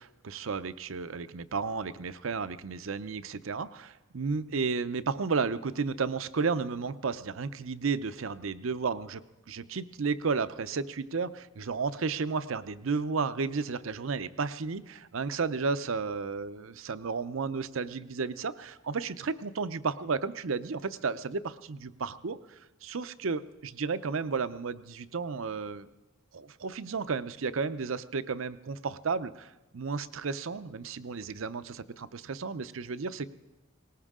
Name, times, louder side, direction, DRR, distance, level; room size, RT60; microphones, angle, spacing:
voice 1, 0.0-9.2 9.5-25.9 26.3-33.3, right 4 dB, 70° right, 14 dB, 0.6 m, -33 dB
20.0 x 19.0 x 3.7 m, 1.1 s
head